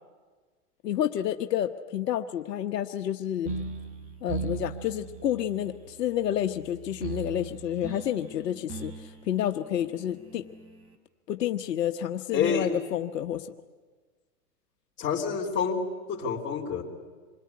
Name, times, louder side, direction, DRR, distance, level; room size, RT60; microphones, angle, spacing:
voice 1, 0.8-3.5 4.2-10.4 11.3-13.5, left 11 dB, 80° left, 7 dB, 1.2 m, -30 dB
sound 1, 3.5-11.0, right 4 dB, 30° right, 3.4 m, -39 dB
voice 2, 12.3-12.7 15.0-16.8, left 6 dB, 25° left, 0 dB, 4.0 m, -28 dB
26.5 x 21.5 x 9.6 m, 1.4 s
hypercardioid pair, 130°, 48 cm